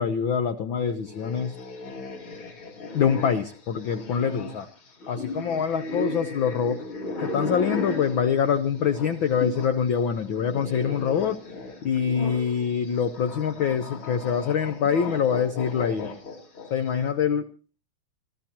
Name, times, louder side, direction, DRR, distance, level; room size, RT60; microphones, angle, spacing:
voice 1, 0.0-1.5 2.9-4.7 5.1-6.9 7.2-11.4 11.8-16.1 16.7-17.5, left 7 dB, 90° left, 9 dB, 1.0 m, -25 dB
sound 1, 1.0-9.8 10.1-16.9, left 2 dB, 45° left, 3.1 m, -36 dB
27.5 x 14.0 x 2.9 m, 0.35 s
omnidirectional pair, 3.4 m